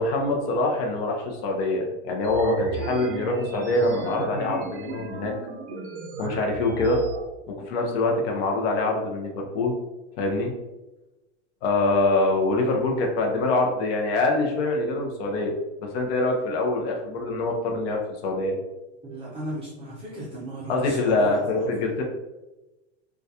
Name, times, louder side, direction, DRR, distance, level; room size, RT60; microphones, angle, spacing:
voice 1, 0.0-5.3 6.2-7.0 7.5-9.7 10.2-10.5 11.6-15.5 15.8-18.6 20.7-22.0, left 2 dB, 60° left, 1 dB, 0.6 m, -24 dB
sound 1, 2.2-7.2, right 3 dB, 85° right, 0.6 m, -35 dB
voice 2, 19.0-21.7, right 1 dB, 15° right, -8 dB, 0.5 m, -36 dB
2.3 x 2.2 x 2.6 m, 1.0 s
supercardioid pair, 155°, 35 cm